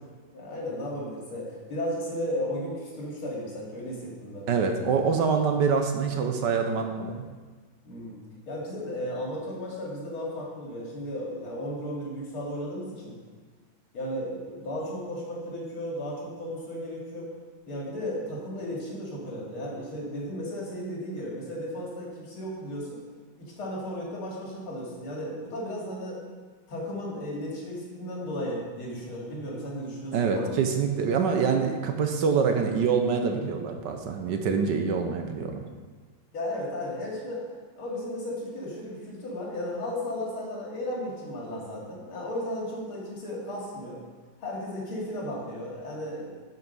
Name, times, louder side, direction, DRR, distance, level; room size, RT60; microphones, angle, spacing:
voice 1, 0.3-4.5 7.8-8.1 8.5-13.2 13.9-17.3 17.7-23.0 23.6-26.2 26.7-30.5 36.3-37.4 37.8-44.0 44.4-46.3, left 1 dB, 85° left, -3 dB, 3.3 m, -34 dB
voice 2, 4.5-7.3 30.1-35.6, right 5 dB, 65° right, 5 dB, 1.3 m, -25 dB
11.5 x 5.4 x 5.4 m, 1.4 s
omnidirectional pair, 2.2 m